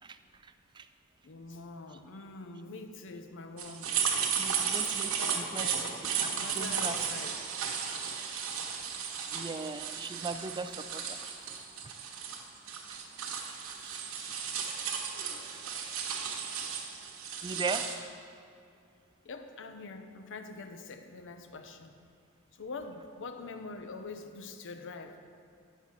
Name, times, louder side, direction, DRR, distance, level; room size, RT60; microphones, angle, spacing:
voice 1, 1.2-3.9 4.8-6.0 6.3-7.3 19.2-21.9 22.5-25.2, left 3 dB, 60° left, 7 dB, 0.6 m, -44 dB
sound 1, 3.6-17.9, right 7 dB, 90° right, 1.1 m, -34 dB
voice 2, 4.4-5.7 6.1-6.2 6.6-7.0 9.3-11.2 13.8-14.0 16.0-16.1 17.4-17.9, right 4 dB, 20° right, 10 dB, 0.3 m, -38 dB
9.0 x 6.3 x 5.6 m, 2.4 s
head